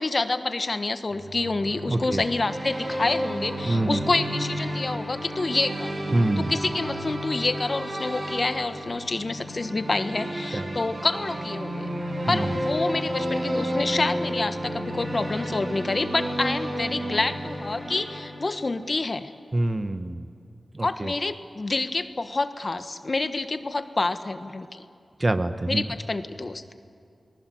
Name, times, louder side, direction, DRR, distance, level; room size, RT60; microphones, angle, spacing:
voice 1, 0.0-5.9 6.4-11.9 12.3-19.3 20.8-24.8 25.7-26.8, left 3 dB, 45° left, 10 dB, 1.2 m, -28 dB
sound 1, 1.1-18.8, equal, 55° right, 5.8 m, -32 dB
voice 2, 1.9-2.2 3.7-4.0 6.1-6.5 10.5-10.8 12.3-12.5 19.5-20.3 20.7-21.1 25.2-25.8, right 2 dB, 35° right, 10 dB, 1.2 m, -25 dB
29.5 x 19.5 x 7.8 m, 2.5 s
cardioid pair, 60°, 0 cm